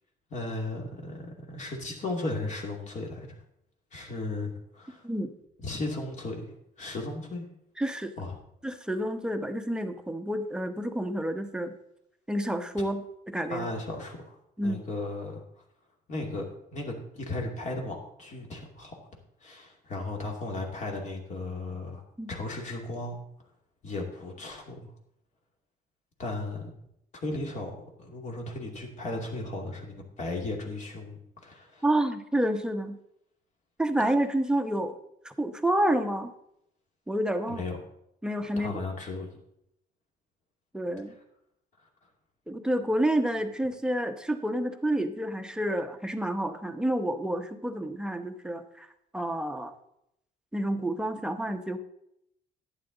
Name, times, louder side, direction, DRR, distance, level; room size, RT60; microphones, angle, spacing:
voice 1, 0.3-3.4 3.9-5.1 5.6-7.5 8.2-8.4 13.5-14.4 14.6-15.4 16.1-19.1 19.4-22.0 22.3-23.2 23.8-24.9 26.2-26.7 27.1-31.8 37.5-37.8 38.6-39.3 41.8-41.9, left 2 dB, 45° left, 1 dB, 2.5 m, -36 dB
voice 2, 7.8-8.1 8.6-11.7 12.3-13.0 13.3-13.6 14.6-14.8 22.2-22.3 31.8-33.0 33.8-35.0 35.2-36.3 37.1-37.6 38.2-38.8 40.7-41.1 42.5-48.9 49.1-49.7 50.5-51.8, right 1 dB, 5° right, 7 dB, 0.9 m, -29 dB
11.0 x 8.9 x 4.0 m, 0.77 s
cardioid pair, 110°, 17 cm